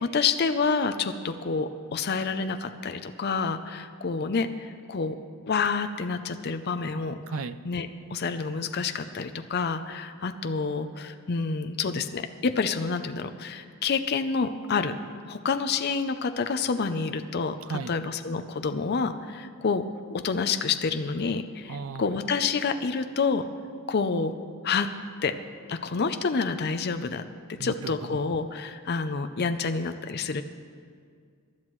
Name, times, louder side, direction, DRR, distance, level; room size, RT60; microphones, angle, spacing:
voice 1, 0.0-5.2 5.5-7.2 7.6-14.9 15.3-23.4 23.9-24.3 24.6-24.9 25.2-25.3 25.7-27.2 27.6-30.4, left 5 dB, 50° left, 8 dB, 0.5 m, -28 dB
voice 2, 7.3-7.6 17.7-17.9 21.7-22.0 27.6-27.9, right 4 dB, 70° right, 13 dB, 0.5 m, -34 dB
23.0 x 11.5 x 3.1 m, 2.1 s
head